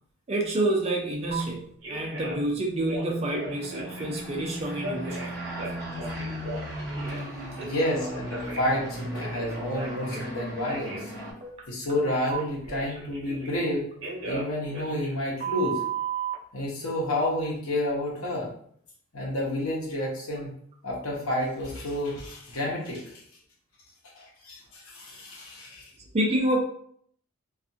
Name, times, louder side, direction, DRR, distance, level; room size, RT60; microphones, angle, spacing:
voice 1, 0.3-1.6 1.9-5.4 11.4-11.5 26.1-26.6, right 1 dB, 30° right, 0 dB, 0.4 m, -28 dB
Telephone, 1.3-1.4 1.8-2.5 2.8-4.2 4.8-7.3 7.6-10.3 10.6-11.0 12.3-13.7 14.0-16.3, right 5 dB, 60° right, 0.8 m, -35 dB
sound 1, 3.1-11.3, equal, ahead, 1.3 m, -37 dB
voice 2, 7.6-11.1 11.7-13.8 14.2-15.8 16.5-18.5 19.1-20.5 20.8-23.2 24.2-25.9, left 1 dB, 80° left, -3 dB, 0.9 m, -30 dB
2.5 x 2.3 x 2.7 m, 0.63 s
head